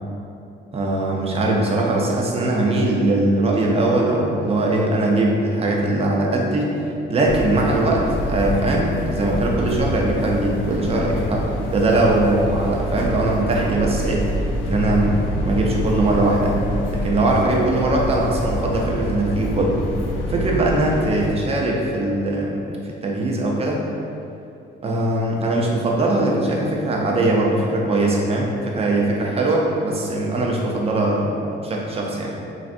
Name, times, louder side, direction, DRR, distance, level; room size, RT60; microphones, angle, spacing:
voice 1, 0.7-6.7 7.1-14.3 14.6-16.6 16.9-19.8 20.3-23.8 24.8-32.3, right 2 dB, 30° right, -2 dB, 0.5 m, -21 dB
sound 1, 7.2-21.3, equal, 75° left, 0.4 m, -26 dB
3.1 x 2.6 x 2.5 m, 2.6 s
cardioid pair, 90°, 20 cm